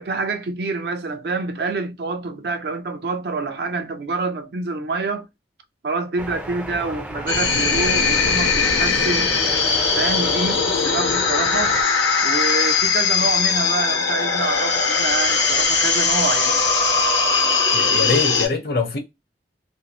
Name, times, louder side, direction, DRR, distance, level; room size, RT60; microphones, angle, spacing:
voice 1, 0.0-5.3 5.8-9.3 10.0-11.8 12.2-16.6, right 3 dB, 65° right, 0.4 m, -26 dB
sound 1, 6.2-11.8, right 1 dB, 5° right, 0.4 m, -33 dB
sound 2, 7.3-18.5, left 5 dB, 85° left, 0.9 m, -20 dB
voice 2, 17.7-19.0, left 3 dB, 55° left, 0.7 m, -23 dB
2.6 x 2.0 x 2.8 m
head